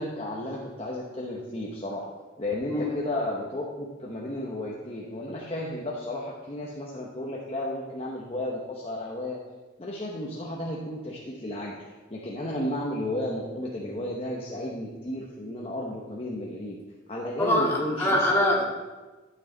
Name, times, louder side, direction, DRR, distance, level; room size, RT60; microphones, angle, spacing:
voice 1, 0.0-2.0 2.4-9.4 9.8-16.8 17.1-18.3, left 1 dB, 30° left, -4 dB, 1.0 m, -33 dB
voice 2, 17.4-18.6, left 1 dB, 15° left, -5 dB, 1.9 m, -23 dB
11.5 x 6.5 x 3.9 m, 1.2 s
head